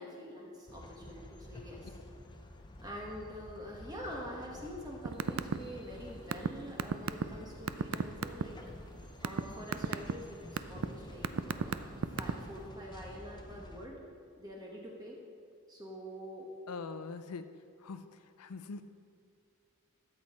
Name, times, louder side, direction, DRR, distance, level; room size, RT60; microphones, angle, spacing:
voice 1, 0.0-1.9 2.8-8.6 9.2-14.0 14.4-15.2 15.7-16.5, equal, 15° right, -2 dB, 1.1 m, -46 dB
sound 1, 0.7-13.9, left 1 dB, 20° left, 0.6 m, -50 dB
sound 2, 5.1-5.6 5.8-8.4 8.9-9.4 9.7-10.1 10.6-10.9 11.2-12.5, right 6 dB, 65° right, 0.4 m, -31 dB
voice 2, 16.7-17.4 17.8-18.8, left 4 dB, 85° left, 10 dB, 0.5 m, -43 dB
13.0 x 8.2 x 4.3 m, 2.3 s
head